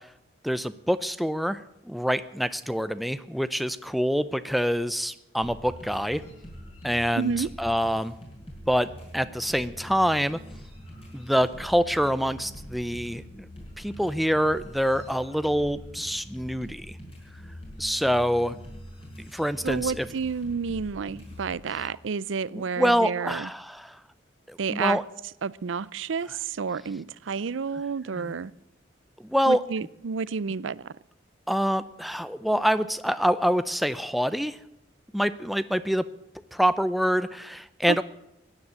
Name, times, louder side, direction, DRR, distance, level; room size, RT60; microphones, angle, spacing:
voice 1, 0.4-6.2 6.8-8.2 8.7-10.4 11.1-13.2 13.8-17.0 17.8-18.6 19.3-20.1 21.7-21.9 22.5-24.0 24.5-25.0 28.1-28.4 29.2-29.6 31.5-34.6 35.1-36.0 36.5-38.0, equal, ahead, 0.5 m, -26 dB
sound 1, 5.4-21.7, equal, 30° left, 5.8 m, -44 dB
voice 2, 7.2-7.5 19.6-23.5 24.6-25.0 25.4-28.5 29.5-30.9 37.9-38.0, right 5 dB, 90° right, 0.5 m, -30 dB
16.0 x 9.9 x 8.9 m
head